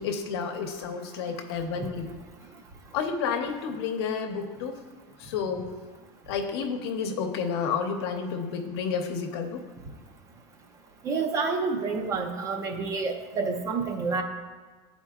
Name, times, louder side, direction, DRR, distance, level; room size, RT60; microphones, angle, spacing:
voice 1, 0.0-2.1 2.9-4.8 5.2-5.7 6.3-9.6 11.4-11.5, left 6 dB, 80° left, 3 dB, 0.8 m, -30 dB
voice 2, 11.0-14.2, right 4 dB, 25° right, 5 dB, 0.5 m, -28 dB
11.5 x 4.2 x 2.4 m, 1.3 s
supercardioid pair, 160°, 13 cm